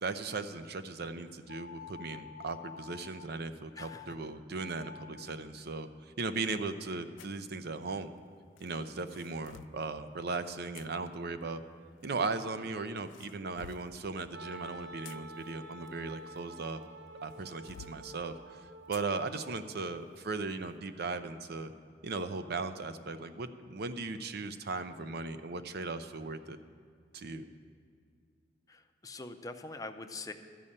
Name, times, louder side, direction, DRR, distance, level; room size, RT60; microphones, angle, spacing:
voice 1, 0.0-8.1 8.6-11.6 12.0-16.8 17.2-18.6 18.9-21.7 22.0-26.6 27.1-27.5, right 3 dB, 60° right, 10 dB, 0.5 m, -37 dB
sound 1, 1.5-3.3 3.7-4.1 4.5-5.3, left 7 dB, 50° left, 0.7 m, -49 dB
voice 2, 3.8-4.2 28.7-30.3, left 3 dB, 20° left, 6 dB, 0.5 m, -44 dB
sound 2, 7.2-7.4 8.6-9.8 10.7-10.9 12.0-12.6 13.1-14.0 14.8-16.8 17.3-18.0 18.9-19.1 19.6-19.7 20.3-20.5, left 9 dB, 75° left, 0.3 m, -52 dB
Wind instrument woodwind instrument, 14.3-20.0, right 1 dB, 85° right, 0.8 m, -49 dB
12.5 x 5.4 x 8.6 m, 2.2 s
head